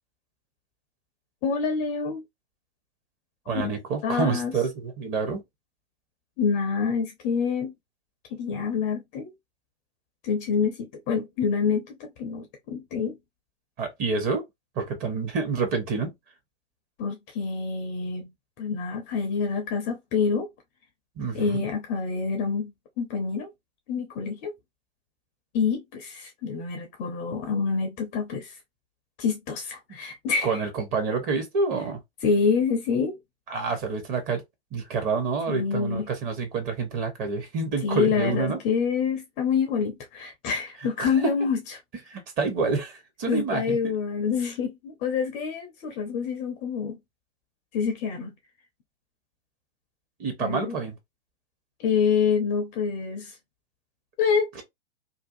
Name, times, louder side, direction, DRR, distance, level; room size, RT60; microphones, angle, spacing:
voice 1, 1.4-2.2 3.5-3.7 4.0-4.5 6.4-7.7 8.3-9.3 10.2-13.1 17.0-18.3 18.6-20.5 21.3-22.7 23.0-23.5 23.9-24.5 25.5-28.6 29.2-30.6 32.2-33.2 35.5-36.1 37.8-41.6 43.3-47.0 47.7-48.3 50.4-50.8 51.8-53.3 54.2-54.6, left 5 dB, 25° left, 0.5 m, -27 dB
voice 2, 3.5-5.4 13.8-14.4 14.8-16.1 21.2-21.6 30.4-32.0 33.5-34.4 34.7-38.6 41.0-41.3 42.1-43.8 50.2-51.0, right 4 dB, 25° right, 0.9 m, -28 dB
2.6 x 2.3 x 2.5 m
figure-of-eight pair, 105°, 33 cm